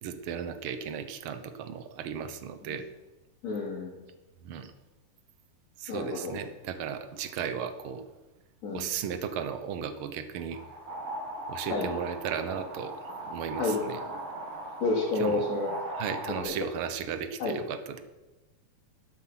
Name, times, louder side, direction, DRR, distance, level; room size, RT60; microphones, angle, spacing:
voice 1, 0.0-2.8 4.4-4.7 5.8-8.0 8.7-10.6 11.5-12.9 13.3-14.0 15.1-15.5 15.9-18.0, right 7 dB, 65° right, 10 dB, 1.3 m, -35 dB
voice 2, 3.4-3.9 5.9-6.3 8.6-8.9 11.7-11.9 13.6-13.8 14.8-15.7 16.4-16.5 17.4-17.5, left 3 dB, 55° left, -8 dB, 3.8 m, -29 dB
sound 1, 10.5-16.4, right 1 dB, 50° right, 2.5 m, -39 dB
12.0 x 12.0 x 5.9 m, 1.1 s
omnidirectional pair, 3.7 m